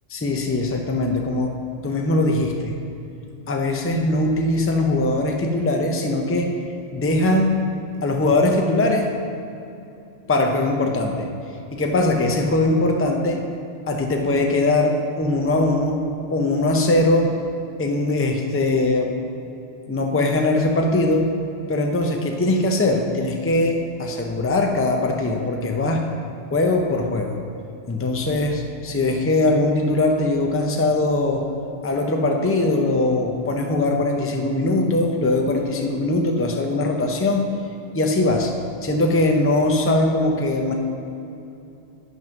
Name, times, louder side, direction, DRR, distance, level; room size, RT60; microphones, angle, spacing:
voice 1, 0.1-1.6 1.8-2.8 3.5-6.6 6.9-7.6 8.0-9.1 10.3-11.3 11.7-13.4 13.9-16.0 16.3-17.4 17.8-19.1 19.9-21.3 21.7-26.0 26.5-27.4 27.9-31.5 31.8-37.5 37.9-38.5 38.8-40.7, left 2 dB, 15° left, 2 dB, 0.5 m, -21 dB
9.5 x 5.4 x 5.9 m, 2.7 s
omnidirectional pair, 1.3 m